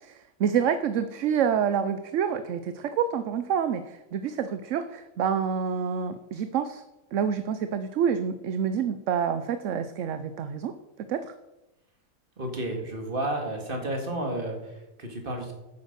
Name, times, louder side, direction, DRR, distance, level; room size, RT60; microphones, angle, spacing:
voice 1, 0.0-6.8 7.1-10.7 11.0-11.3, right 7 dB, 65° right, 11 dB, 1.0 m, -27 dB
voice 2, 12.4-15.5, right 1 dB, 40° right, 3 dB, 2.3 m, -32 dB
9.5 x 8.6 x 6.7 m, 0.97 s
omnidirectional pair, 1.5 m